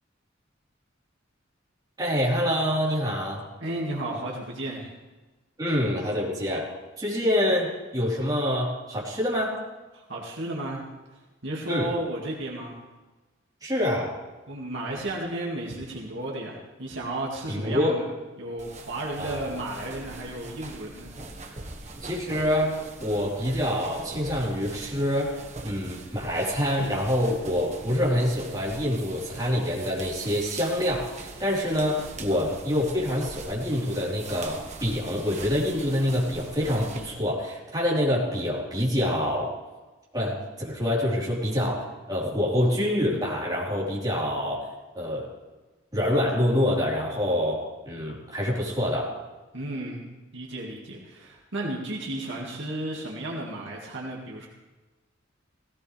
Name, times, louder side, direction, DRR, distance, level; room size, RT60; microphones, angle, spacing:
voice 1, 2.0-3.4 5.6-6.7 7.0-9.6 11.7-11.9 13.6-14.1 17.5-18.0 19.2-19.4 22.0-25.4 25.6-39.5 40.1-44.7 44.9-45.3 45.9-49.1, left 1 dB, 20° right, -5 dB, 4.1 m, -26 dB
voice 2, 3.6-4.9 9.9-10.8 11.4-12.8 14.5-18.0 18.4-21.6 49.5-50.0 50.3-54.5, right 1 dB, 65° right, -2 dB, 2.3 m, -33 dB
sound 1, 18.6-37.1, right 2 dB, 35° right, 1.5 m, -42 dB
17.0 x 16.5 x 3.5 m, 1.2 s
head